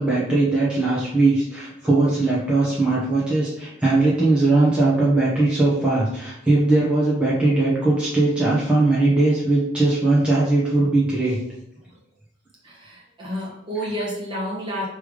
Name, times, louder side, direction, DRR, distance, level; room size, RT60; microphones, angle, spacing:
voice 1, 0.0-11.4, right 2 dB, 5° right, -8 dB, 1.2 m, -19 dB
voice 2, 12.6-14.9, equal, 25° right, -4 dB, 1.5 m, -30 dB
5.7 x 3.4 x 5.1 m, 0.79 s
head